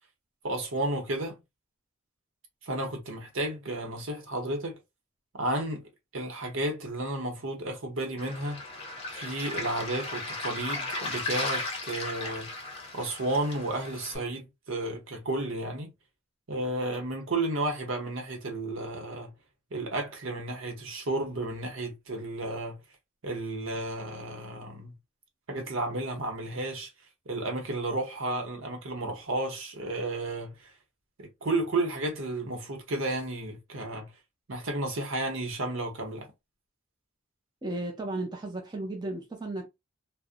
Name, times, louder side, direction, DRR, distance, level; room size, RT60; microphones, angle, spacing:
voice 1, 0.4-1.4 2.6-4.8 5.3-8.6 9.1-12.5 12.9-15.9 16.5-19.3 19.7-22.8 23.2-24.9 25.5-26.9 27.3-30.7 31.2-34.1 34.5-36.3, right 2 dB, 70° right, 0.8 m, -32 dB
Waves surf, 8.2-14.2, left 2 dB, 30° left, 0.7 m, -36 dB
voice 2, 37.6-39.7, right 2 dB, 20° right, 0.5 m, -34 dB
2.5 x 2.0 x 2.5 m
head